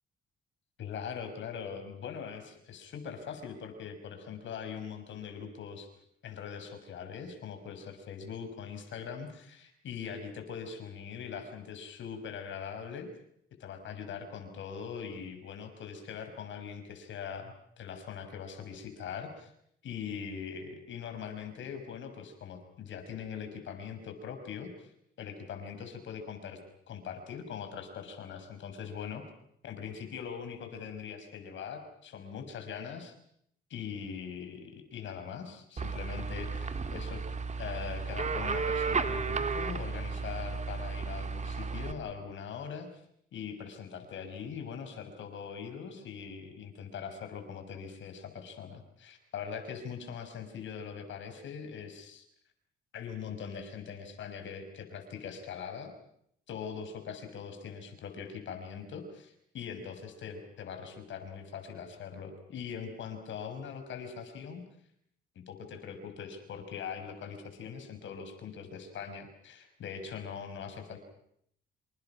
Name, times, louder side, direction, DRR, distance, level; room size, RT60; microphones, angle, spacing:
voice 1, 0.8-5.9 6.2-13.1 13.6-19.5 19.8-24.9 25.2-26.6 26.9-29.2 29.6-33.1 33.7-42.9 43.3-52.2 52.9-55.9 56.5-64.6 65.3-71.0, left 7 dB, 70° left, 7 dB, 6.1 m, -41 dB
sound 1, 35.8-41.9, right 4 dB, 35° right, 2.3 m, -33 dB
28.0 x 26.5 x 6.1 m, 0.70 s
cardioid pair, 90°, 20 cm